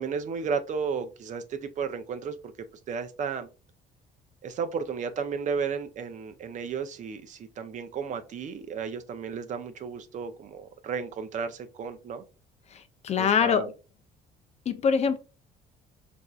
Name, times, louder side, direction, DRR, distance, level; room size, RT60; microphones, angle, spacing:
voice 1, 0.0-2.5 2.9-3.5 4.4-12.2 13.2-13.7, right 6 dB, 45° right, 0.5 m, -33 dB
voice 2, 12.7-13.7 14.7-15.2, left 6 dB, 40° left, 0.4 m, -24 dB
4.3 x 2.6 x 2.3 m
cardioid pair, 110°, 17 cm